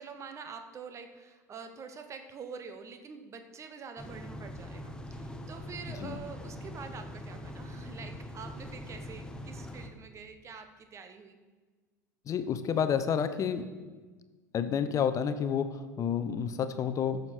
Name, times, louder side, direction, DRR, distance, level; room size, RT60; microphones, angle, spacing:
voice 1, 0.0-11.4, right 5 dB, 30° right, 8 dB, 1.1 m, -46 dB
sound 1, 4.0-9.9, left 1 dB, 10° left, 1.0 m, -43 dB
voice 2, 12.3-13.7 14.5-17.2, left 7 dB, 35° left, 11 dB, 0.8 m, -30 dB
14.0 x 6.7 x 4.4 m, 1.3 s
figure-of-eight pair, 70°, 10 cm